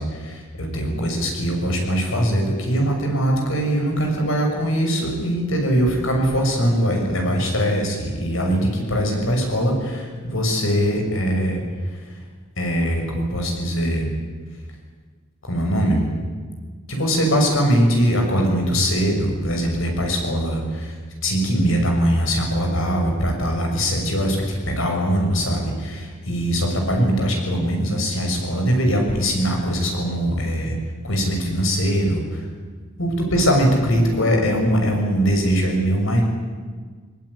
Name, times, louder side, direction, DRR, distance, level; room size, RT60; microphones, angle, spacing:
voice 1, 0.0-11.6 11.9-12.0 12.6-14.1 15.4-16.0 16.9-20.9 21.2-30.8 31.0-32.5 33.0-36.2, equal, 70° left, 2 dB, 6.6 m, -21 dB
20.5 x 20.5 x 9.8 m, 1.5 s
head